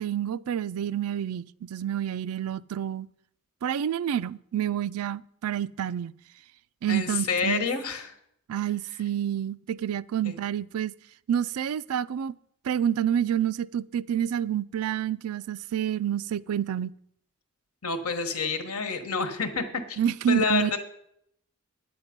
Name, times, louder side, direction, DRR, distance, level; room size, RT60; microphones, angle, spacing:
voice 1, 0.0-3.1 3.6-6.1 6.8-7.7 8.5-10.9 11.3-12.3 12.6-16.9 20.0-20.8, right 9 dB, 85° right, 0.3 m, -28 dB
voice 2, 6.9-8.1 10.2-10.4 17.8-20.0 20.3-20.8, left 5 dB, 90° left, 1.3 m, -28 dB
9.9 x 8.7 x 5.2 m
head